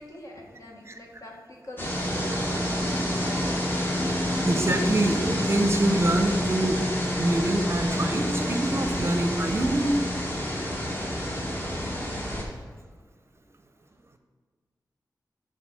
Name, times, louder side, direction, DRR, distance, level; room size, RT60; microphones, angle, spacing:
voice 1, 0.0-3.6, left 1 dB, 50° left, -1 dB, 1.5 m, -44 dB
sound 1, 1.8-12.4, equal, 30° left, 1.5 m, -28 dB
voice 2, 4.4-6.8 7.2-9.9, right 1 dB, 35° right, 7 dB, 0.6 m, -25 dB
7.4 x 3.9 x 6.4 m, 1.5 s
wide cardioid pair, 70°, 7 cm